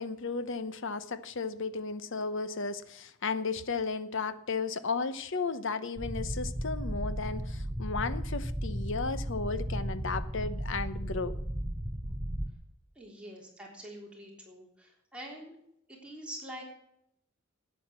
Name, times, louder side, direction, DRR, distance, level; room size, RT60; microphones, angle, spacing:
voice 1, 0.0-11.3, left 4 dB, 65° left, 13 dB, 0.9 m, -34 dB
sound 1, 6.0-12.5, equal, 20° right, 1.3 m, -35 dB
voice 2, 12.9-15.6 15.9-16.6, right 1 dB, 5° right, -2 dB, 3.4 m, -45 dB
12.5 x 9.2 x 7.4 m, 0.75 s
head